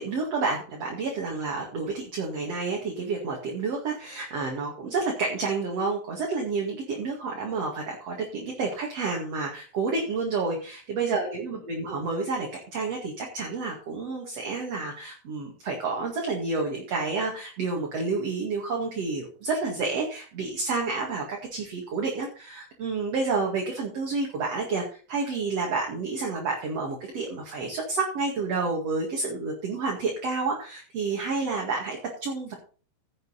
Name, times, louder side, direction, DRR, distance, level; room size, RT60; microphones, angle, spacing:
voice 1, 0.0-32.5, right 4 dB, 45° right, 0 dB, 2.8 m, -29 dB
16.0 x 6.8 x 4.1 m, 0.39 s
omnidirectional pair, 4.3 m